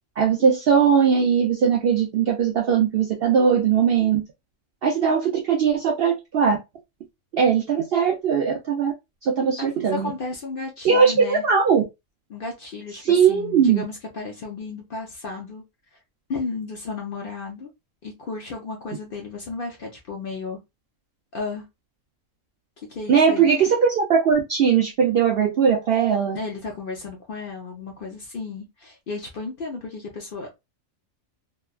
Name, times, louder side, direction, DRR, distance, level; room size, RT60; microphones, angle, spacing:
voice 1, 0.2-4.2 4.8-6.6 7.3-8.9 9.2-10.1 10.8-11.8 13.0-13.8 23.1-26.4, right 6 dB, 65° right, 0.6 m, -19 dB
voice 2, 9.9-11.4 12.3-15.6 16.3-17.7 18.0-20.6 21.3-21.6 22.9-23.5 26.3-30.6, left 4 dB, 55° left, 0.6 m, -33 dB
3.0 x 2.1 x 2.2 m
omnidirectional pair, 1.4 m